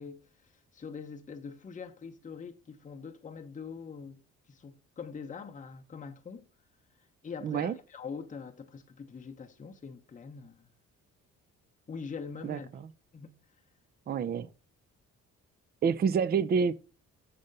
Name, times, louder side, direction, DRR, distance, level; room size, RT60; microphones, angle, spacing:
voice 1, 0.0-4.2 4.5-6.5 7.2-10.7 11.9-12.8 13.1-13.3, left 5 dB, 25° left, 0.8 m, -43 dB
voice 2, 7.4-7.7 12.4-12.6 14.1-14.5 15.8-16.7, right 6 dB, 35° right, 0.4 m, -27 dB
6.7 x 4.2 x 5.2 m
cardioid pair, 90°, 30 cm